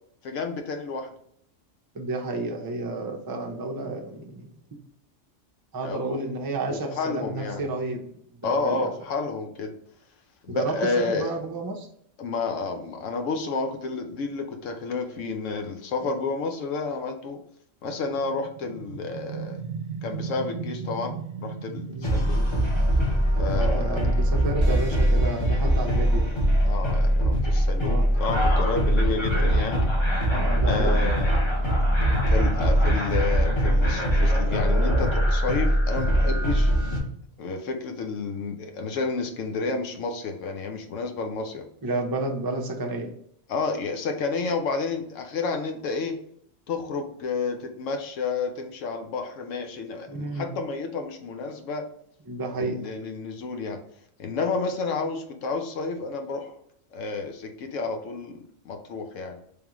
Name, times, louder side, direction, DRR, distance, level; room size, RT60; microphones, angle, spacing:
voice 1, 0.2-1.1 5.8-6.2 6.7-7.7 8.4-9.7 10.4-11.3 12.2-17.4 17.8-19.6 20.0-22.5 23.4-24.0 26.6-29.8 30.7-31.4 32.1-36.7 37.4-41.6 43.5-46.2 46.7-51.9 52.6-53.8 54.2-56.5 56.9-58.4 58.6-59.4, left 4 dB, 85° left, 5 dB, 1.0 m, -30 dB
voice 2, 1.9-4.5 5.7-8.1 8.4-8.9 10.5-11.9 16.0-16.1 21.9-22.1 23.5-26.3 27.8-28.1 30.3-31.0 41.8-43.1 50.1-50.5 52.3-52.8, right 2 dB, 35° right, 2 dB, 0.4 m, -31 dB
sound 1, 17.8-29.3, right 5 dB, 50° right, 0.7 m, -39 dB
sound 2, 22.0-37.0, equal, 25° left, 1.0 m, -22 dB
3.6 x 3.4 x 3.0 m, 0.70 s
omnidirectional pair, 1.3 m